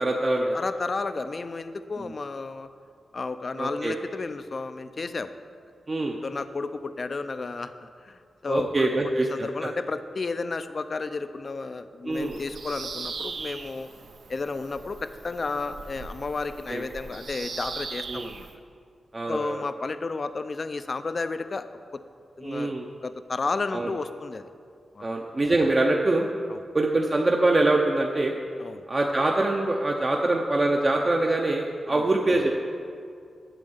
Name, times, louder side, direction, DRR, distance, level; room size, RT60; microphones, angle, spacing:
voice 1, 0.0-0.6 2.0-2.1 3.6-3.9 5.9-6.2 8.5-9.7 12.0-12.4 16.7-16.8 18.1-18.3 19.1-19.6 22.4-22.9 23.7-23.9 25.0-26.3 26.7-28.4 28.9-32.5, right 2 dB, 25° right, 1 dB, 0.7 m, -24 dB
voice 2, 0.5-2.7 3.1-5.4 6.2-8.9 9.3-13.9 14.3-18.5 19.3-22.0 22.4-22.7 23.0-24.5 24.9-25.1 26.5-26.6 28.6-28.8 31.9-32.1, left 3 dB, 40° left, 11 dB, 0.5 m, -32 dB
Bird vocalization bird call bird song, 12.1-18.5, right 4 dB, 75° right, 0.8 m, -39 dB
9.0 x 7.5 x 8.0 m, 2.3 s
wide cardioid pair, 155°, 0 cm